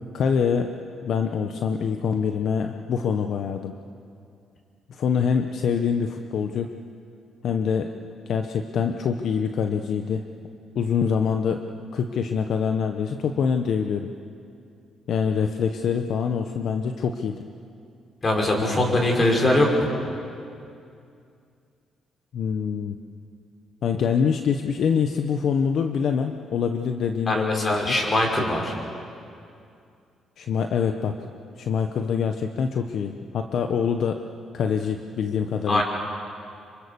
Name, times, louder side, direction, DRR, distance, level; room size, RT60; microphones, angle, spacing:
voice 1, 0.1-0.7 1.0-3.7 4.9-6.7 7.4-7.9 8.3-10.2 10.7-11.6 11.9-14.1 15.1-17.4 22.3-23.0 23.8-27.9 30.4-31.1 31.6-34.2 34.5-35.8, left 6 dB, 65° left, 6 dB, 1.0 m, -25 dB
voice 2, 18.2-19.9 27.3-28.7 35.7-35.8, left 1 dB, 35° left, 0 dB, 6.0 m, -21 dB
26.5 x 24.5 x 7.0 m, 2.5 s
cardioid pair, 90°, 0 cm